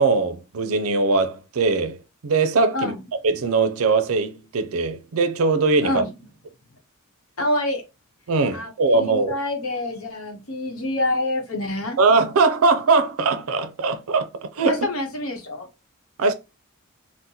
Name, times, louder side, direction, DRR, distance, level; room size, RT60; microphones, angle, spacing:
voice 1, 0.0-2.0 2.2-2.9 3.2-6.0 8.3-9.3 12.0-14.3 14.5-14.9 16.2-16.3, right 3 dB, 75° right, 0.5 m, -20 dB
voice 2, 2.7-3.0 5.8-6.1 7.4-7.8 8.5-12.0 14.7-15.7, left 1 dB, 75° left, 0.8 m, -27 dB
2.8 x 2.1 x 3.8 m
head